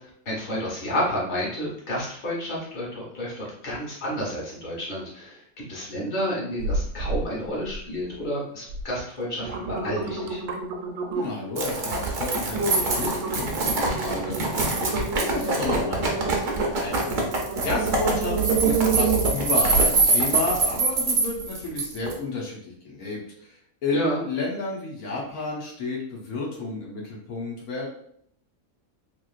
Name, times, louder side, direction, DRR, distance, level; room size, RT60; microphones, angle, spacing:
voice 1, 0.0-5.4 5.7-10.4 23.9-24.2, equal, 35° left, -6 dB, 1.1 m, -30 dB
sound 1, 6.6-7.3 7.6-8.1 8.7-8.8 9.2-11.5 12.0-12.1 12.5-20.0 20.5-20.6, right 4 dB, 85° right, 1.1 m, -29 dB
voice 2, 11.1-14.7 15.1-16.2 16.8-17.1 17.6-23.5 23.8-27.9, left 3 dB, 85° left, -3 dB, 1.3 m, -31 dB
sound 2, 11.6-22.1, right 3 dB, 60° right, 0.5 m, -24 dB
3.0 x 3.0 x 2.4 m, 0.65 s
omnidirectional pair, 1.5 m